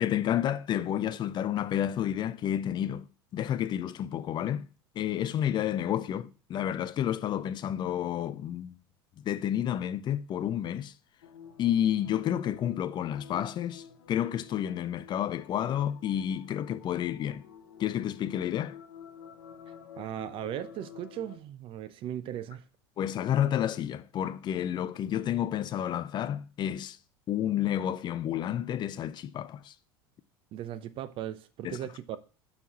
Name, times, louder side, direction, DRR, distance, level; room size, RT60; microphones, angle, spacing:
voice 1, 0.0-4.7 5.0-8.7 9.2-10.9 11.6-17.4 17.8-18.8 23.0-27.0 27.3-29.7 31.6-31.8, left 10 dB, 35° left, 0.5 m, -30 dB
sound 1, 11.2-21.4, left 7 dB, 75° left, 0.8 m, -49 dB
voice 2, 20.0-22.6 30.5-32.2, right 11 dB, 45° right, 0.7 m, -37 dB
5.6 x 4.6 x 6.1 m
figure-of-eight pair, 75°, 13 cm